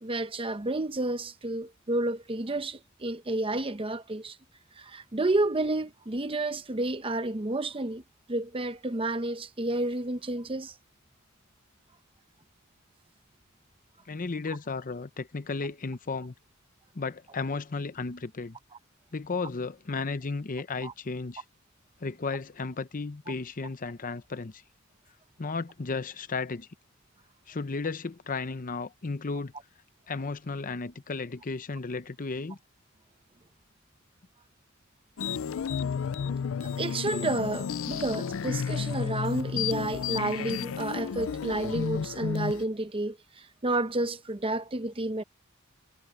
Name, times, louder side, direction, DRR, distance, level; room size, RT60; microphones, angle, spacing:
voice 1, 0.0-4.4 4.8-8.0 8.3-10.7 20.8-20.9 36.6-45.2, right 2 dB, 25° right, 0.9 m, -30 dB
voice 2, 14.1-16.3 16.9-18.6 19.1-21.4 22.0-24.6 25.4-26.7 27.5-29.5 30.1-32.6, left 4 dB, 40° left, 0.7 m, -34 dB
sound 1, 35.2-42.6, left 6 dB, 70° left, 0.4 m, -32 dB
head